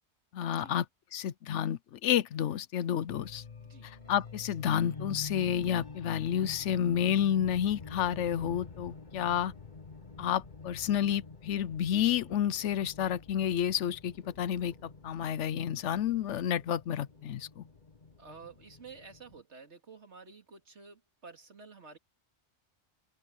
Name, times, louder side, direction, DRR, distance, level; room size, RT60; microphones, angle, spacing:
voice 1, 0.3-0.8 1.1-3.4 3.8-9.5 10.2-17.6, left 10 dB, 85° left, 1.0 m, -30 dB
sound 1, 3.1-19.4, left 4 dB, 40° left, 1.9 m, -47 dB
voice 2, 18.2-22.0, right 4 dB, 75° right, 2.7 m, -51 dB
open air
omnidirectional pair, 1.2 m